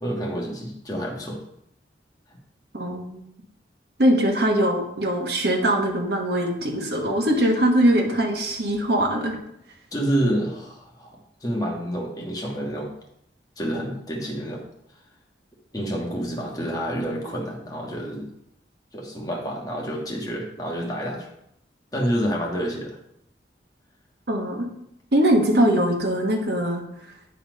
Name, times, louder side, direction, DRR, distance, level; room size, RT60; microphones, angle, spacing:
voice 1, 0.0-1.4 9.9-11.1 11.4-12.9 13.6-14.6 15.7-18.3 18.9-21.3 21.9-23.0, equal, 20° left, -1 dB, 1.4 m, -28 dB
voice 2, 2.7-3.2 4.0-9.4 24.3-24.7 25.1-27.1, right 1 dB, 65° right, 2 dB, 1.3 m, -22 dB
9.2 x 4.2 x 5.1 m, 0.77 s
head